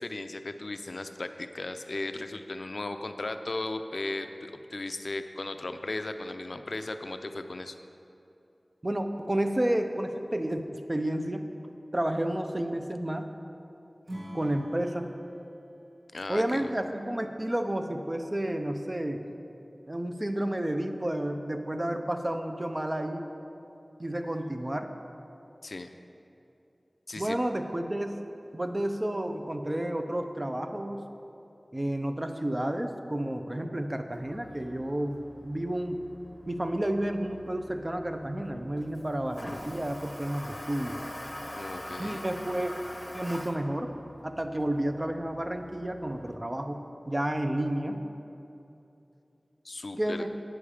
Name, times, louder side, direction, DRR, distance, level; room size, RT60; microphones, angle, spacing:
voice 1, 0.0-7.7 16.1-16.7 25.6-25.9 27.1-27.4 41.5-42.2 49.6-50.2, left 2 dB, 75° left, 8 dB, 0.4 m, -36 dB
voice 2, 8.8-11.4 11.9-13.3 14.3-15.1 16.3-19.2 19.9-23.3 24.0-24.9 27.1-28.1 28.5-31.0 31.7-35.2 35.4-36.0 36.5-41.0 42.0-42.7 43.1-43.9 44.2-46.8 47.1-48.0 50.0-50.3, right 1 dB, 30° right, 6 dB, 0.6 m, -31 dB
Acoustic guitar / Strum, 14.0-17.3, right 1 dB, 50° right, 1.6 m, -46 dB
Toilet flush, 34.1-46.4, left 1 dB, 25° left, 0.8 m, -44 dB
8.8 x 7.1 x 4.9 m, 2.8 s
wide cardioid pair, 55°, 0 cm